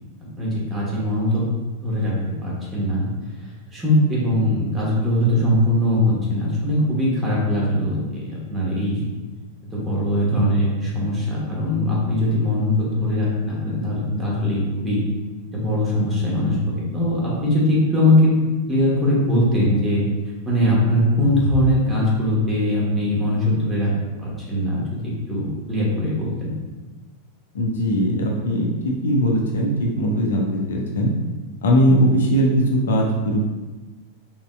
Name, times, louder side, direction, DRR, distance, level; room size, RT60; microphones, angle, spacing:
voice 1, 0.4-1.5 1.8-3.1 3.7-9.0 9.7-15.0 15.5-20.0 20.4-23.9 24.2-26.5, left 1 dB, 15° right, -6 dB, 1.4 m, -21 dB
voice 2, 27.5-31.1 31.6-33.5, equal, 65° left, -1 dB, 0.6 m, -20 dB
4.1 x 3.8 x 2.3 m, 1.2 s
figure-of-eight pair, 90°, 0 cm